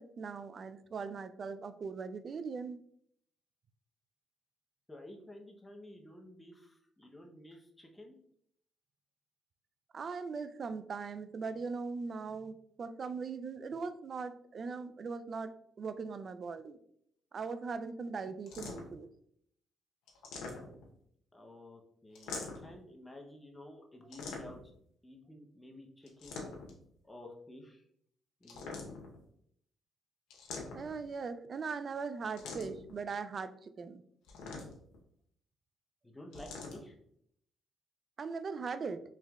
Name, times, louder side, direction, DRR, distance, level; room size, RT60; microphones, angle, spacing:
voice 1, 0.0-2.8 9.9-16.8 17.3-19.1 20.7-20.8 30.7-34.0 38.2-39.0, right 5 dB, 45° right, 12 dB, 0.3 m, -40 dB
voice 2, 4.9-8.2 21.3-24.6 25.0-26.4 27.0-27.8 28.4-28.8 36.0-37.0, left 1 dB, 15° left, 1 dB, 0.8 m, -52 dB
sound 1, 18.5-19.0 20.1-21.0 22.1-22.8 24.1-24.8 26.1-26.8 28.4-29.2 30.3-31.1 32.4-32.9 34.2-35.0 36.3-36.8, left 4 dB, 90° left, 0.8 m, -44 dB
4.5 x 3.3 x 2.3 m, 0.69 s
cardioid pair, 90°, 0 cm